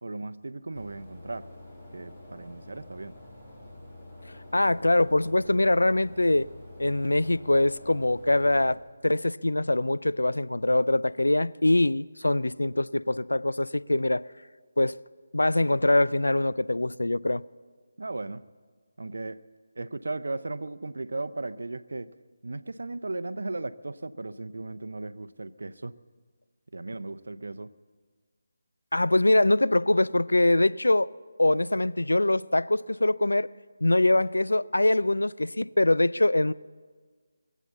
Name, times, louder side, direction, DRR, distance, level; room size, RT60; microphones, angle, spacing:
voice 1, 0.0-1.5 1.9-3.2 18.0-18.5 19.0-19.5 19.8-22.1 22.4-25.9 26.7-27.7, right 2 dB, 75° right, 0.6 m, -36 dB
sound 1, 0.8-8.8, left 1 dB, 20° left, 3.2 m, -47 dB
voice 2, 4.5-6.5 6.8-14.2 14.8-15.0 15.3-17.4 28.9-31.1 31.4-33.5 33.8-36.5, left 2 dB, 90° left, 0.4 m, -23 dB
22.0 x 8.2 x 7.0 m
figure-of-eight pair, 160°, 0 cm